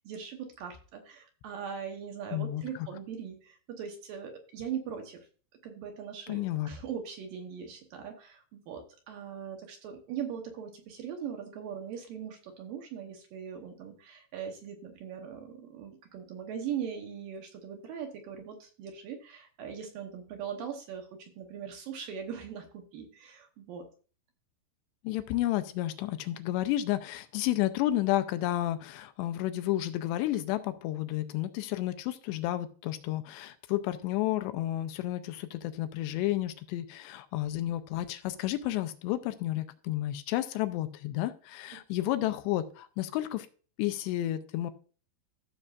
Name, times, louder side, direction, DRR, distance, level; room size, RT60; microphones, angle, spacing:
voice 1, 0.0-5.3 5.6-23.9 41.7-42.1, right 8 dB, 70° right, 3 dB, 2.2 m, -40 dB
voice 2, 2.3-2.6 6.3-6.7 25.0-43.5 43.8-44.7, left 14 dB, 85° left, 10 dB, 2.6 m, -31 dB
14.5 x 6.6 x 2.4 m, 0.38 s
omnidirectional pair, 5.2 m